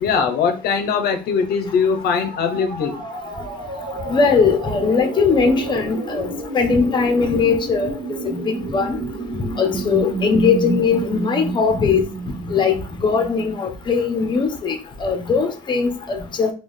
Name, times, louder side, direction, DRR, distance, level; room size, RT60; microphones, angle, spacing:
voice 1, 0.0-2.9, left 6 dB, 70° left, 6 dB, 0.6 m, -21 dB
sound 1, 1.8-13.6, right 3 dB, 50° right, 1.4 m, -30 dB
voice 2, 4.1-7.9 8.2-9.0 9.6-12.0 12.5-16.5, left 5 dB, 25° left, 6 dB, 0.7 m, -20 dB
3.6 x 2.3 x 3.1 m, 0.34 s
cardioid pair, 110°, 17 cm